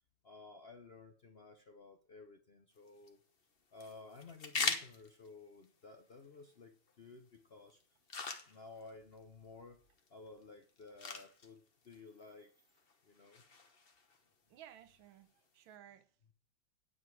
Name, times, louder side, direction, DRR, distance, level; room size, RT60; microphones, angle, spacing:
voice 1, 0.2-3.2 3.7-7.8 8.1-8.2 8.5-9.8 10.1-13.4, left 3 dB, 65° left, 6 dB, 0.6 m, -55 dB
sound 1, 2.7-15.7, left 4 dB, 35° left, 1.0 m, -46 dB
voice 2, 14.5-16.0, right 11 dB, 75° right, 10 dB, 1.6 m, -57 dB
9.8 x 7.9 x 4.7 m, 0.43 s
omnidirectional pair, 2.2 m